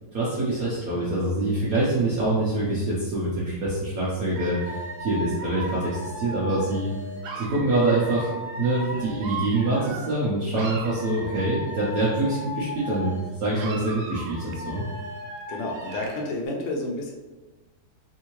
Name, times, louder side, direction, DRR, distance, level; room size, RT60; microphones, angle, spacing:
voice 1, 0.1-6.9 7.3-8.3 8.6-13.1 13.4-14.8, right 2 dB, 70° right, -7 dB, 0.8 m, -25 dB
Dog / Alarm, 4.4-10.3 10.5-13.3 13.5-16.3, right 1 dB, 85° right, 1.5 m, -36 dB
voice 2, 15.5-17.1, left 2 dB, 80° left, 1 dB, 1.5 m, -30 dB
3.6 x 2.7 x 2.9 m, 1.2 s
omnidirectional pair, 2.3 m